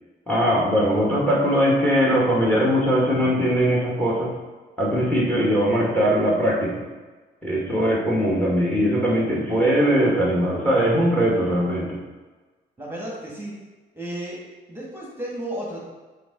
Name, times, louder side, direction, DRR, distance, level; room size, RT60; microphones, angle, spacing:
voice 1, 0.3-4.3 4.8-6.8 7.4-12.0, equal, 5° left, -3 dB, 2.0 m, -20 dB
voice 2, 12.8-13.5 13.9-14.4 14.7-15.8, right 1 dB, 10° right, -4 dB, 2.0 m, -33 dB
5.9 x 3.9 x 5.3 m, 1.3 s
cardioid pair, 90°, 20 cm